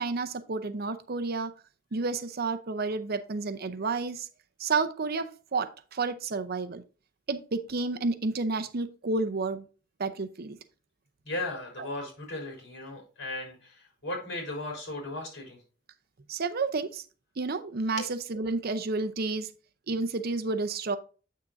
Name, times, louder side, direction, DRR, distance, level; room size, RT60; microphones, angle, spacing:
voice 1, 0.0-1.5 1.9-4.3 4.6-6.8 7.3-9.7 10.0-10.6 11.8-11.9 16.3-17.0 17.4-19.5 19.9-21.0, right 3 dB, 50° right, 0.6 m, -30 dB
voice 2, 11.2-15.6 18.0-18.1, left 2 dB, 65° left, 4.0 m, -36 dB
8.5 x 6.5 x 2.6 m
head